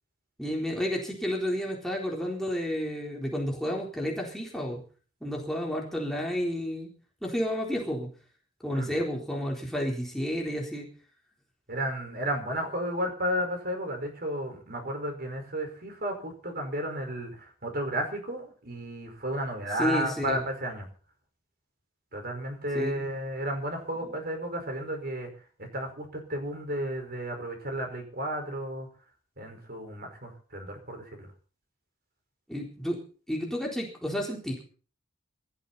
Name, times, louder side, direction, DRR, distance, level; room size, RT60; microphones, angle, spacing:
voice 1, 0.4-4.8 5.2-6.9 7.2-8.1 8.6-10.9 19.8-20.4 22.7-23.0 32.5-33.0 33.3-34.6, equal, ahead, -2 dB, 4.0 m, -31 dB
voice 2, 11.7-20.9 22.1-25.3 25.6-28.9 29.4-31.3, right 1 dB, 45° right, 4 dB, 5.1 m, -33 dB
21.0 x 14.0 x 4.3 m, 0.40 s
head